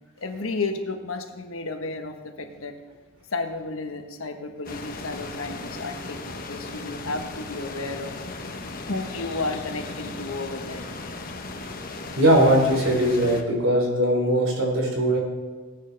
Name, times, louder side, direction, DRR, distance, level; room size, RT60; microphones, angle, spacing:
voice 1, 0.2-2.7 3.3-8.1 8.9-11.1, left 3 dB, 90° left, 5 dB, 1.3 m, -32 dB
sound 1, 4.7-13.4, left 3 dB, 45° left, 1.1 m, -36 dB
voice 2, 12.2-15.2, right 1 dB, 80° right, 1 dB, 3.4 m, -20 dB
18.0 x 9.3 x 3.4 m, 1.4 s
head